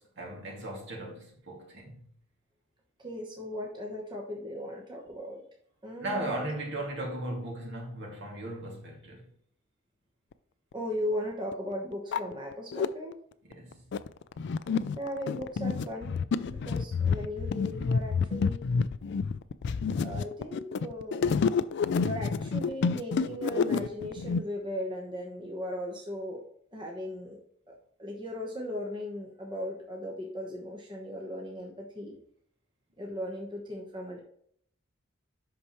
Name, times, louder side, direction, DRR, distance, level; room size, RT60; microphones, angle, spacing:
voice 1, 0.0-2.0 6.0-9.3 13.5-13.9, right 1 dB, 60° right, 2.2 m, -37 dB
voice 2, 3.0-5.4 5.8-6.4 10.7-13.2 15.0-18.6 20.0-21.3 21.9-26.4 26.7-27.7 28.0-32.2 33.0-34.2, equal, 25° right, 1.0 m, -37 dB
sound 1, 10.7-10.8 11.5-11.6 11.9-12.9 13.5-24.4, left 5 dB, 60° left, 0.4 m, -29 dB
8.3 x 5.8 x 3.0 m
head